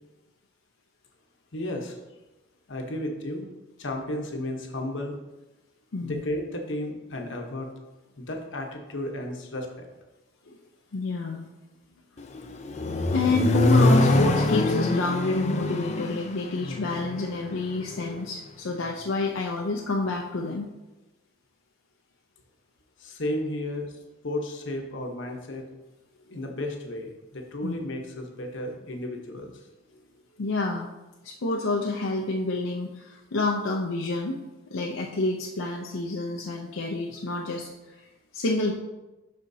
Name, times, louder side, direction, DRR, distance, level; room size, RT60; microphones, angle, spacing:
voice 1, 1.5-2.0 2.7-3.5 3.8-5.1 6.0-7.7 8.2-9.9 23.0-24.0 24.2-25.6 26.3-29.5, left 1 dB, 70° left, 2 dB, 1.0 m, -33 dB
voice 2, 5.9-6.3 10.5-10.6 10.9-11.5 13.1-20.7 27.6-27.8 30.4-30.9 31.2-34.4 34.7-38.1 38.3-38.7, left 2 dB, 85° left, -1 dB, 0.6 m, -28 dB
Accelerating revving vroom, 12.2-18.2, left 2 dB, 35° left, 0.4 m, -24 dB
11.5 x 4.3 x 2.7 m, 1.1 s
head